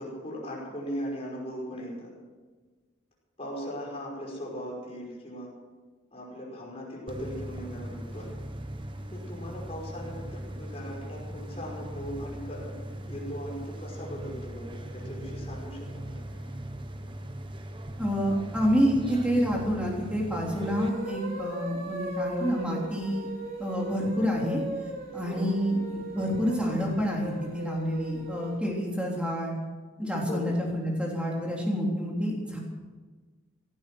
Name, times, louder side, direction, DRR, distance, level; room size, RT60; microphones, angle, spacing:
voice 1, 0.0-2.1 3.4-5.5 6.1-8.4 9.1-12.7 13.1-16.5 25.2-25.6 30.2-30.6, equal, 30° left, -3 dB, 5.3 m, -39 dB
sound 1, 7.1-20.9, right 1 dB, 25° right, 1.1 m, -39 dB
voice 2, 18.0-23.3 23.6-24.6 25.1-29.5 30.0-32.6, equal, 5° right, -2 dB, 3.4 m, -28 dB
sound 2, 20.5-28.6, right 1 dB, 50° right, 3.8 m, -38 dB
17.0 x 12.0 x 6.3 m, 1.4 s
head